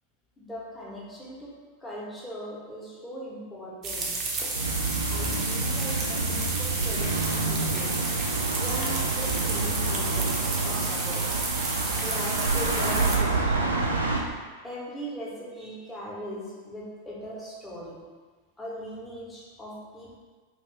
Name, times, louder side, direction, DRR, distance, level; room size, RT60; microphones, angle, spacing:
voice 1, 0.4-1.5 1.8-4.1 5.1-8.0 8.5-11.3 12.0-13.6 14.6-18.0 18.6-20.2, equal, 10° left, -6 dB, 0.9 m, -39 dB
sound 1, 3.8-13.2, right 3 dB, 30° right, 0.5 m, -31 dB
sound 2, 4.5-14.2, right 3 dB, 80° right, 0.4 m, -28 dB
2.8 x 2.5 x 3.3 m, 1.4 s
figure-of-eight pair, 90°, 0 cm